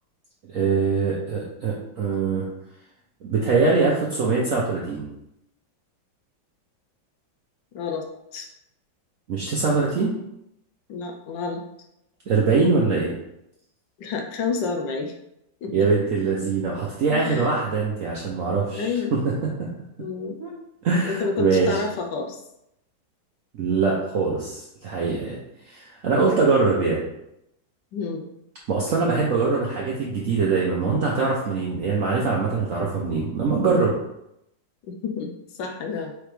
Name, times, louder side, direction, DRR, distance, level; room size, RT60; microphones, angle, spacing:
voice 1, 0.5-2.5 3.2-5.1 9.3-10.2 12.3-13.1 15.7-19.5 20.4-20.5 20.8-21.8 23.5-27.0 28.7-34.0, right 4 dB, 65° right, -3 dB, 0.8 m, -23 dB
voice 2, 7.7-8.5 10.9-11.7 14.0-15.1 15.6-15.9 17.1-17.5 18.7-19.2 20.0-20.4 21.0-22.4 27.9-28.3 34.9-36.1, left 4 dB, 75° left, 3 dB, 1.2 m, -29 dB
4.9 x 3.3 x 3.1 m, 0.81 s
omnidirectional pair, 2.2 m